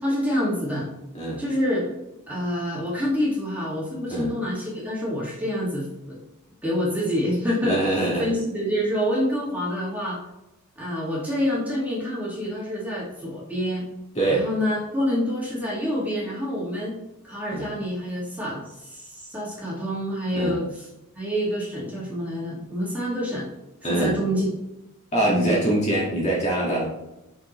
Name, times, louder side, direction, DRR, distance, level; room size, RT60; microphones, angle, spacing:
voice 1, 0.0-0.9 1.4-1.9 2.3-6.2 6.6-10.2 10.8-13.9 14.3-17.0 17.2-20.9 21.1-23.5 23.9-24.5 25.2-25.6, equal, 5° right, -6 dB, 2.0 m, -27 dB
voice 2, 7.6-8.3 14.1-14.5 17.5-17.7 20.3-20.6 23.8-24.2 25.1-26.8, right 1 dB, 30° left, -5 dB, 2.0 m, -23 dB
5.9 x 5.7 x 3.1 m, 0.94 s
head